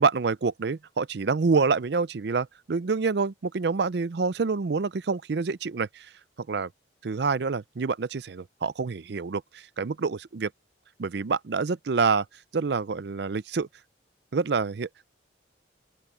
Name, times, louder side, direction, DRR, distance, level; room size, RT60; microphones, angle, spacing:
voice 1, 0.0-6.1 6.5-6.7 7.0-10.5 11.0-12.3 12.5-13.7 14.3-15.1, right 4 dB, 60° right, 0.5 m, -27 dB
open air
head